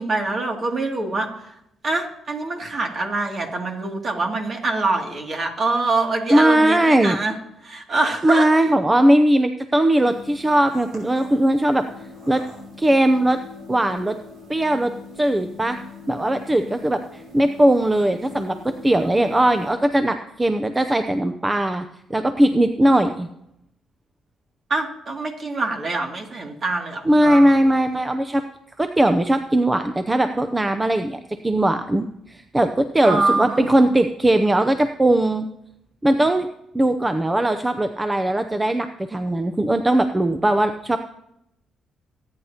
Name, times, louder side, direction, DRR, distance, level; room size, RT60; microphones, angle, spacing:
voice 1, 0.0-1.5 1.8-7.4 7.6-8.5 24.7-27.5 33.0-33.9, right 3 dB, 45° right, 2 dB, 2.5 m, -25 dB
voice 2, 6.3-7.2 8.2-11.9 12.3-12.4 12.8-13.4 13.7-14.2 14.5-14.9 15.2-15.8 16.1-21.8 22.1-23.3 27.1-28.4 28.8-35.5 36.0-36.5 36.7-41.0, right 1 dB, 15° right, 8 dB, 0.6 m, -19 dB
sound 1, 10.0-19.7, left 4 dB, 70° right, 5.6 m, -41 dB
24.5 x 9.6 x 2.9 m, 0.81 s
cardioid pair, 90°, 0 cm